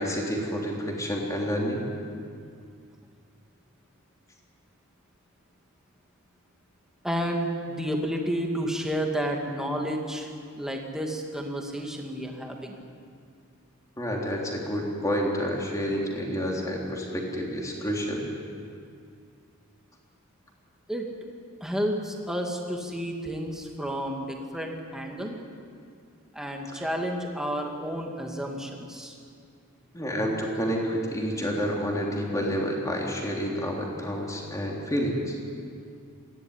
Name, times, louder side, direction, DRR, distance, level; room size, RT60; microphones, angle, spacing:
voice 1, 0.0-1.8 14.0-18.2 26.7-26.8 29.9-35.4, equal, 15° left, -1 dB, 3.4 m, -29 dB
voice 2, 7.0-12.8 20.9-21.1 21.6-25.4 26.3-29.2, equal, ahead, 1 dB, 2.2 m, -31 dB
21.5 x 15.5 x 9.9 m, 2.3 s
head